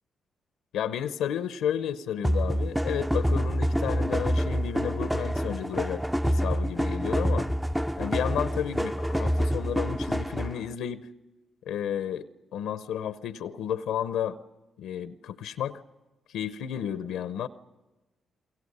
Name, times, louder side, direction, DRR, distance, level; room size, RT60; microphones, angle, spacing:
voice 1, 0.7-7.5 8.0-11.1 11.6-14.4 14.8-15.8 16.3-17.5, left 9 dB, 80° left, 13 dB, 0.7 m, -32 dB
sound 1, 2.2-10.7, equal, 5° right, 0.7 m, -27 dB
30.0 x 22.5 x 5.4 m, 1.1 s
hypercardioid pair, 45°, 0 cm